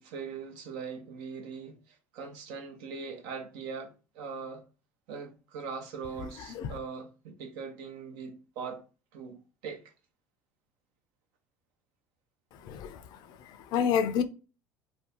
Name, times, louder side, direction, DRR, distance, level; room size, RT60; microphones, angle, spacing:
voice 1, 0.0-1.8 2.1-4.6 5.1-8.8 9.1-9.4 9.6-9.8, right 5 dB, 70° right, 0.7 m, -40 dB
voice 2, 12.6-13.2 13.5-14.2, left 7 dB, 60° left, 0.5 m, -29 dB
2.6 x 2.3 x 3.7 m
hypercardioid pair, 75°, 8 cm